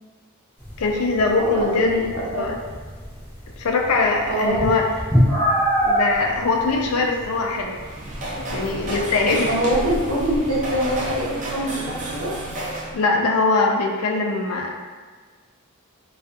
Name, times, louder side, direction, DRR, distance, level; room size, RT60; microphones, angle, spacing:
sound 1, 0.6-11.3, equal, 10° left, 0.6 m, -27 dB
voice 1, 0.8-1.9 2.3-2.6 3.6-4.8 5.8-7.8 8.4-9.5 12.9-14.7, left 3 dB, 75° left, 1 dB, 0.4 m, -21 dB
voice 2, 1.4-2.4 4.3-4.7 9.5-12.3, right 1 dB, 80° right, -5 dB, 0.8 m, -24 dB
sound 2, 7.7-13.0, right 1 dB, 35° right, 0.4 m, -31 dB
2.4 x 2.4 x 2.4 m, 1.4 s
head